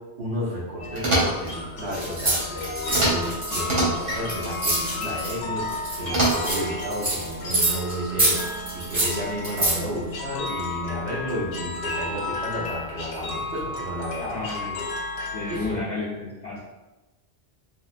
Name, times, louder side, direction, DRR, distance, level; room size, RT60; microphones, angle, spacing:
voice 1, 0.0-5.6 6.0-8.4 8.6-14.4 15.5-15.8, equal, 65° right, -5 dB, 1.1 m, -32 dB
sound 1, 0.8-15.7, left 2 dB, 85° left, 0.9 m, -33 dB
sound 2, 0.9-1.5 2.9-3.3 3.6-4.2 6.0-6.7, right 1 dB, 90° right, 1.3 m, -24 dB
sound 3, 1.9-5.3 5.7-7.9 8.2-9.7, right 2 dB, 35° right, 1.5 m, -25 dB
voice 2, 14.3-14.9 15.3-16.6, left 3 dB, 55° left, -7 dB, 0.5 m, -32 dB
3.4 x 2.1 x 2.4 m, 1.1 s
omnidirectional pair, 1.2 m